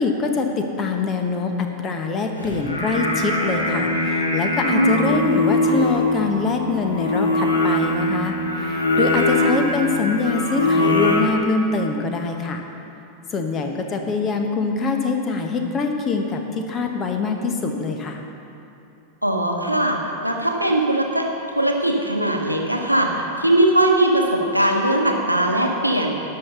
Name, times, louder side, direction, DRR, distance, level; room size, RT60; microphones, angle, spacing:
voice 1, 0.0-12.6 13.3-18.2, left 4 dB, 25° left, 4 dB, 1.1 m, -24 dB
Singing, 2.4-11.2, left 1 dB, 80° left, 1.5 m, -22 dB
voice 2, 4.6-5.1 9.3-9.6 19.2-26.2, right 1 dB, 90° right, 1 dB, 1.1 m, -20 dB
11.0 x 5.8 x 6.9 m, 2.7 s
figure-of-eight pair, 90°, 0 cm